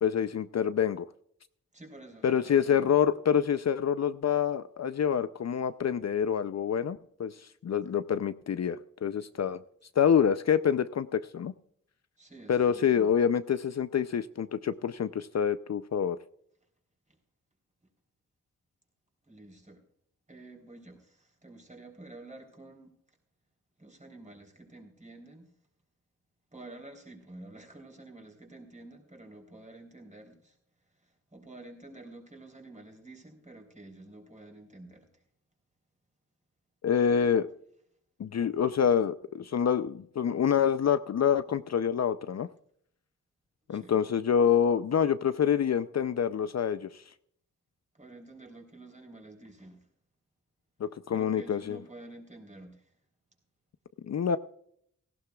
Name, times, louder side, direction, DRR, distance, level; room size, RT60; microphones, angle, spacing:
voice 1, 0.0-1.1 2.2-7.4 7.6-9.6 10.0-11.5 12.5-16.2 36.8-37.5 38.2-42.5 43.7-47.0 50.8-51.8 54.1-54.4, left 8 dB, 55° left, 12 dB, 0.5 m, -26 dB
voice 2, 1.7-2.9 12.2-13.1 17.1-17.2 19.2-19.8 20.3-22.9 23.8-25.5 26.5-30.6 31.0-35.1 43.7-44.0 47.9-49.8 51.1-52.9, right 2 dB, 20° right, 2 dB, 3.6 m, -50 dB
17.5 x 16.0 x 2.3 m, 0.68 s
wide cardioid pair, 110°, 33 cm